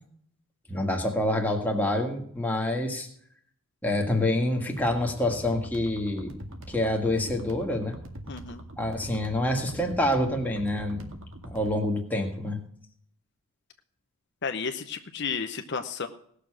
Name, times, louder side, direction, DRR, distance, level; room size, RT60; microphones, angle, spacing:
voice 1, 0.7-3.1 3.8-6.3 6.7-8.0 8.8-11.2 11.4-12.6, left 1 dB, 10° left, 1 dB, 1.8 m, -27 dB
sound 1, 4.8-11.8, right 1 dB, 60° right, 2.0 m, -43 dB
voice 2, 8.3-8.6 14.4-16.1, left 5 dB, 55° left, 7 dB, 0.8 m, -32 dB
18.5 x 6.7 x 6.1 m, 0.64 s
head